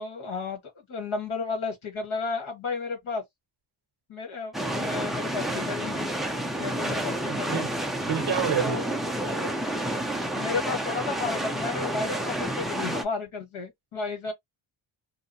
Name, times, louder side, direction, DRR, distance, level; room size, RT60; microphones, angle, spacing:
voice 1, 0.0-3.2 4.1-6.1 6.6-7.7 8.6-8.9 9.2-9.8 10.2-14.3, left 4 dB, 75° left, 1.5 m, -33 dB
sound 1, 4.5-13.0, right 1 dB, ahead, 0.4 m, -30 dB
voice 2, 7.3-7.7 8.1-8.9, right 8 dB, 55° right, 0.7 m, -28 dB
2.6 x 2.0 x 2.6 m
wide cardioid pair, 100°, 49 cm